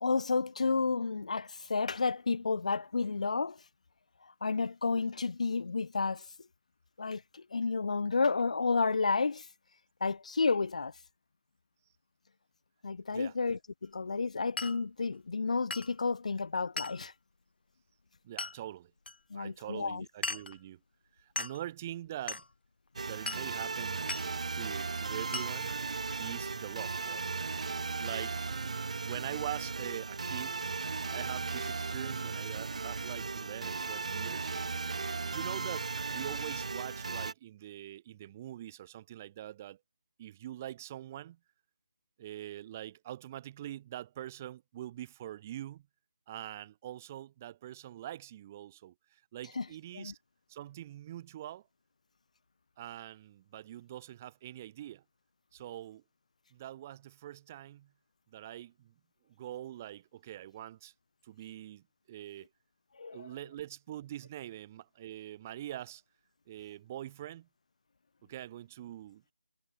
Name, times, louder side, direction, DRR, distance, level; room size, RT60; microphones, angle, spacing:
voice 1, 0.0-3.6 4.4-6.2 7.0-9.4 10.0-10.9 12.8-17.1 19.3-20.0 49.6-49.7 49.9-50.1 63.0-63.3, left 4 dB, 40° left, 1.0 m, -31 dB
Glass, 14.6-14.8 15.7-15.9 16.8-17.0 18.4-18.6 19.1-19.2 20.2-20.6 21.4-21.6 22.3-22.5 23.3-23.5 24.1-24.3 25.3-25.5, left 3 dB, 70° left, 1.5 m, -37 dB
voice 2, 18.2-18.9 19.3-20.8 21.2-22.4 23.0-25.8 26.2-27.3 28.0-28.4 29.0-30.6 31.1-34.5 35.2-39.8 40.2-41.4 42.2-45.9 46.3-50.2 50.5-51.6 52.8-55.0 55.5-56.0 56.5-57.9 58.3-58.9 59.4-60.9 61.2-62.5 63.1-66.0 66.5-67.5 68.3-69.3, right 12 dB, 15° right, 2.0 m, -44 dB
sound 1, 23.0-37.3, right 4 dB, 40° right, 1.4 m, -36 dB
figure-of-eight pair, 175°, 6 cm